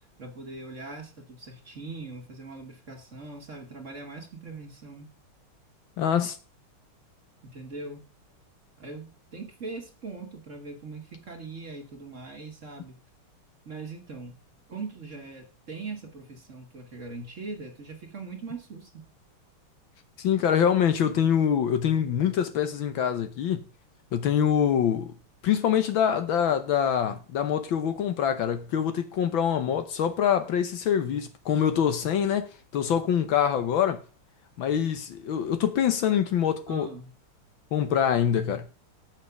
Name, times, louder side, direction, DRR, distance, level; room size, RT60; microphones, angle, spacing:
voice 1, 0.2-5.1 7.4-8.0 8.8-13.0 13.7-14.4 14.7-19.1 36.7-37.1, right 3 dB, 35° right, 1.7 m, -41 dB
voice 2, 6.0-6.4 20.2-23.6 24.1-25.1 25.4-34.0 34.6-36.9 37.7-38.6, left 8 dB, 65° left, 1.6 m, -25 dB
7.6 x 5.9 x 6.8 m
omnidirectional pair, 2.4 m